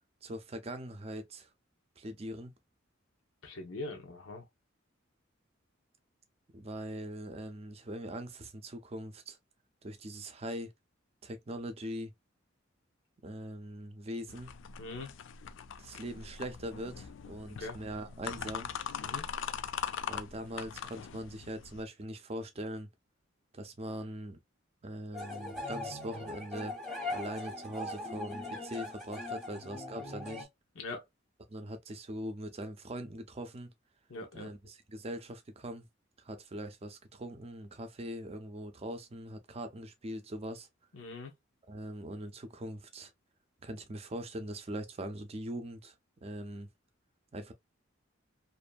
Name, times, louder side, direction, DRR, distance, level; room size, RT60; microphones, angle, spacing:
voice 1, 0.2-1.5 2.0-2.5 6.5-9.4 9.8-10.7 11.2-12.1 13.2-14.5 15.8-18.7 20.1-22.9 23.5-24.4 24.8-26.7 27.1-30.5 31.5-33.7 34.3-35.9 36.2-40.7 41.7-43.1 43.6-45.9 46.2-46.7 47.3-47.5, right 1 dB, 30° right, 0.5 m, -41 dB
voice 2, 3.4-4.4 14.8-15.1 17.4-17.8 19.0-19.2 29.5-29.6 30.8-31.0 34.1-34.5 40.9-41.3, left 2 dB, 85° left, 0.8 m, -42 dB
sound 1, 14.3-21.8, left 8 dB, 65° left, 0.3 m, -41 dB
sound 2, 25.1-30.5, left 2 dB, ahead, 0.7 m, -40 dB
2.6 x 2.6 x 2.2 m
head